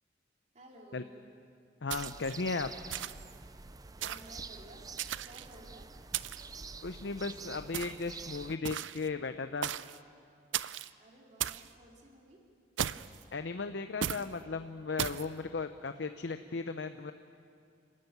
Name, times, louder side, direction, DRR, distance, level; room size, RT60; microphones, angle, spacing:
voice 1, 0.5-1.2 3.9-5.9 11.0-12.4, right 1 dB, 40° right, -1 dB, 3.0 m, -55 dB
voice 2, 1.8-2.7 6.8-9.7 13.3-17.1, left 4 dB, 70° left, 9 dB, 0.7 m, -36 dB
sound 1, 1.9-8.6, right 4 dB, 20° right, 0.4 m, -47 dB
sound 2, 1.9-2.4 2.9-3.3 4.0-4.4 5.0-5.5 6.1-6.5 7.7-8.1 8.6-9.1 9.6-10.0 10.5-10.9 11.4-11.7 12.8-13.2 14.0-14.3 15.0-15.3, right 10 dB, 85° right, 0.5 m, -36 dB
28.5 x 13.0 x 9.3 m, 2.4 s
head